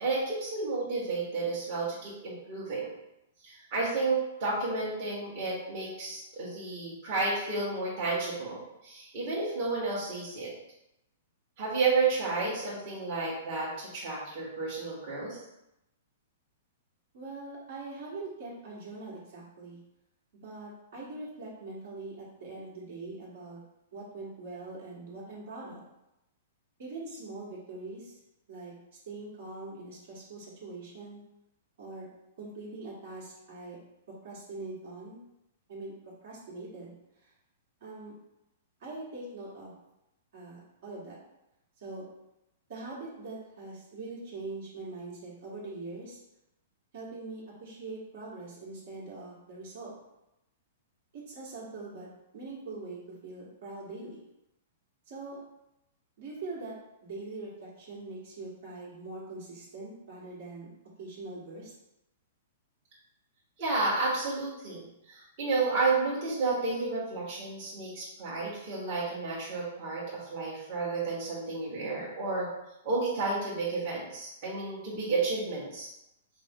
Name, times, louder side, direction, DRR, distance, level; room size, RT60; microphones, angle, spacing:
voice 1, 0.0-2.9 3.4-10.5 11.6-15.4 63.6-72.5 72.8-75.9, right 3 dB, 40° right, -7 dB, 1.3 m, -31 dB
voice 2, 17.1-19.8 20.4-23.6 23.9-25.8 26.8-28.1 28.5-28.7 29.1-31.2 31.8-32.1 32.4-33.8 34.1-35.2 35.7-35.9 36.2-37.3 37.8-38.1 38.8-39.7 40.3-41.2 41.8-42.0 42.7-46.2 46.9-49.9 51.1-52.1 52.3-54.2 55.1-55.4 56.2-56.8 57.0-60.7 61.0-61.7, right 3 dB, 60° right, -6 dB, 1.5 m, -42 dB
5.1 x 2.0 x 3.6 m, 0.89 s
hypercardioid pair, 150°, 0 cm